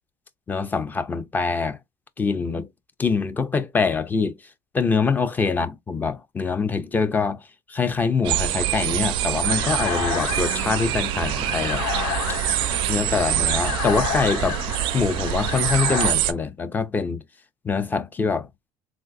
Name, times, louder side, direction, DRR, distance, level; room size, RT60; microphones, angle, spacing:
voice 1, 0.5-1.8 2.2-2.7 3.0-4.4 4.7-7.4 7.7-11.8 12.9-14.6 14.9-17.2 17.6-18.5, left 5 dB, 20° left, 0.5 m, -24 dB
sound 1, 8.2-16.3, right 14 dB, 65° right, 0.4 m, -25 dB
sound 2, 9.4-16.1, left 6 dB, 80° left, 1.9 m, -30 dB
3.7 x 2.5 x 2.4 m
supercardioid pair, 115°, 9 cm